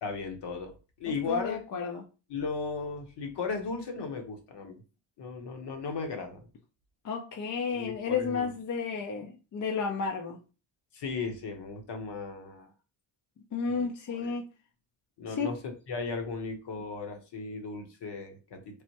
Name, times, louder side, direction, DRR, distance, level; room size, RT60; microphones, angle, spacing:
voice 1, 0.0-0.7 1.0-1.6 2.3-4.8 5.2-6.5 7.7-8.5 10.9-12.7 13.7-13.9 14.1-14.4 15.2-15.6 15.9-18.8, left 4 dB, 60° left, 1.0 m, -36 dB
voice 2, 1.1-2.1 7.0-10.4 13.5-14.4 15.3-15.5, left 5 dB, 40° left, 0.5 m, -32 dB
3.3 x 2.1 x 2.9 m
supercardioid pair, 70°, 47 cm